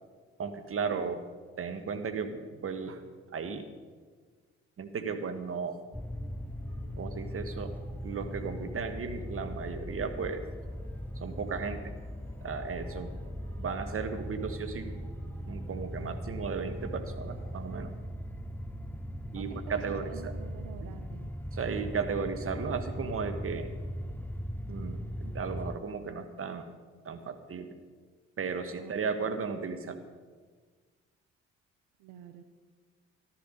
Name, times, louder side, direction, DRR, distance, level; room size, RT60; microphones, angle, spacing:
voice 1, 0.4-1.2 1.6-3.0 3.3-3.7 4.8-5.8 7.0-7.7 8.0-10.4 11.1-11.9 12.4-13.1 13.6-15.0 15.5-17.9 19.3-20.3 20.8-20.9 21.5-23.7 24.7-26.7 27.0-27.8 28.4-30.0, right 5 dB, 40° right, 7 dB, 1.6 m, -35 dB
sound 1, 5.9-25.8, equal, 5° left, 0.5 m, -39 dB
sound 2, 6.5-17.8, right 1 dB, 90° right, 4.1 m, -60 dB
voice 2, 19.3-21.3 28.7-29.3 32.0-32.5, right 9 dB, 70° right, 8 dB, 0.8 m, -47 dB
14.0 x 12.0 x 5.3 m, 1.5 s
hypercardioid pair, 45°, 33 cm